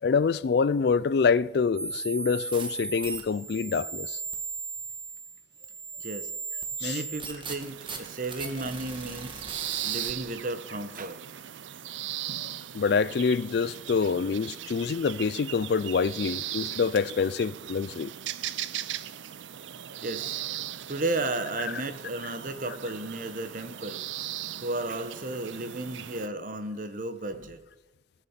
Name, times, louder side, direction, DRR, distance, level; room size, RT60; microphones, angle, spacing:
voice 1, 0.0-4.2 6.8-7.0 8.6-8.7 12.7-18.1, left 5 dB, 55° left, 0.4 m, -26 dB
sound 1, 1.8-10.4, right 4 dB, 25° right, 1.6 m, -37 dB
voice 2, 6.0-6.3 6.8-9.4 9.8-11.2 20.0-20.4 20.9-24.0 24.6-27.6, right 2 dB, 45° right, 1.1 m, -33 dB
sound 2, 7.6-26.3, right 12 dB, 80° right, 0.5 m, -38 dB
18.5 x 6.9 x 7.3 m
head